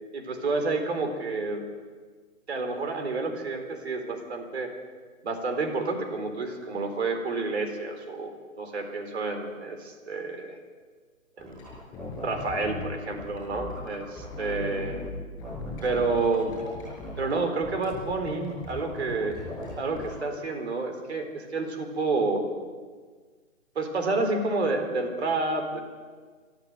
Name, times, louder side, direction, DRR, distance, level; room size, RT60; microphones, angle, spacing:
voice 1, 0.1-1.6 2.5-4.7 5.2-10.6 11.4-11.6 12.2-15.0 15.8-16.6 17.2-19.4 19.8-22.6 23.8-25.8, right 3 dB, 50° right, 5 dB, 3.9 m, -29 dB
sound 1, 11.4-15.1 15.4-17.4 17.6-20.1, left 2 dB, 10° left, 7.2 m, -38 dB
24.5 x 13.5 x 7.8 m, 1.5 s
hypercardioid pair, 170°, 41 cm